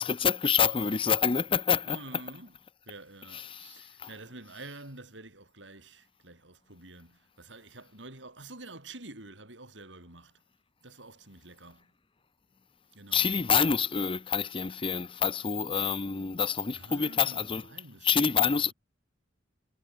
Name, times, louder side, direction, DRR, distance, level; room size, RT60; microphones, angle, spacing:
voice 1, 0.0-2.0 3.3-4.1 13.1-17.7 18.0-18.7, left 6 dB, 30° left, 0.7 m, -27 dB
voice 2, 1.8-2.6 2.9-10.4 10.8-11.9 12.9-13.4 16.7-18.7, right 2 dB, 80° right, 7.1 m, -48 dB
head